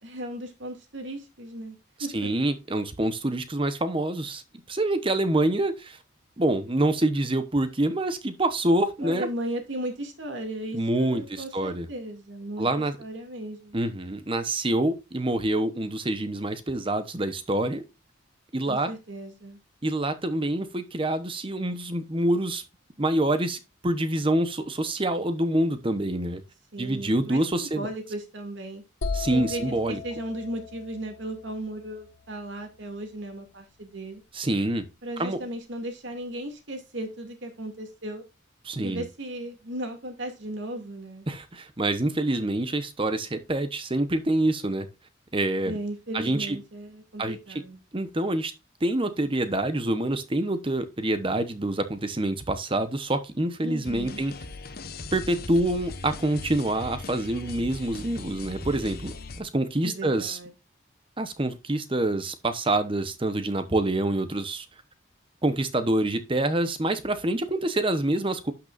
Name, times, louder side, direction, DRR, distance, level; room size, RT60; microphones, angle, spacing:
voice 1, 0.0-2.3 9.0-13.8 18.7-19.6 26.7-28.8 29.3-34.2 35.0-38.2 38.8-41.3 45.6-47.8 53.6-54.2 59.8-60.5, right 1 dB, 65° right, 2.4 m, -36 dB
voice 2, 2.1-4.4 4.7-6.0 6.4-9.3 10.7-11.9 12.6-13.0 13.7-17.8 18.5-18.9 19.8-22.6 23.0-26.4 26.8-27.9 29.1-30.0 34.3-34.8 35.2-35.4 38.6-39.0 41.3-44.9 45.3-45.7 46.1-46.6 47.2-47.4 47.9-48.5 48.8-54.3 55.1-60.4 61.2-64.7 65.4-68.5, right 1 dB, 25° right, 0.9 m, -26 dB
sound 1, 29.0-32.8, left 4 dB, 85° left, 1.1 m, -37 dB
sound 2, 53.8-59.4, left 3 dB, 50° left, 0.9 m, -39 dB
12.0 x 5.8 x 2.5 m
head